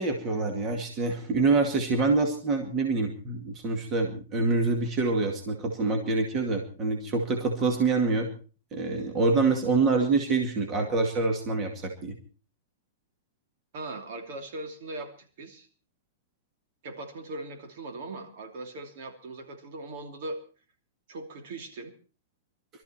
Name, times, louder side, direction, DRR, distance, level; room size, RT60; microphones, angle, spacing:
voice 1, 0.0-8.3 8.7-12.2, right 3 dB, 20° right, 3 dB, 2.2 m, -26 dB
voice 2, 13.7-15.7 16.8-20.4 21.1-21.9, right 2 dB, 50° right, 5 dB, 2.9 m, -39 dB
22.0 x 13.5 x 4.4 m, 0.39 s
supercardioid pair, 160°, 0 cm